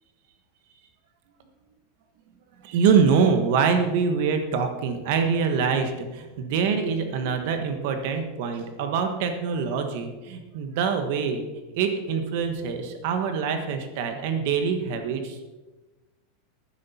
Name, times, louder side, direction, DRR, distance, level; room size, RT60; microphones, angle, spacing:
voice 1, 2.6-11.4 11.7-15.4, right 6 dB, 50° right, 6 dB, 1.2 m, -24 dB
12.5 x 9.7 x 4.2 m, 1.2 s
supercardioid pair, 170°, 0 cm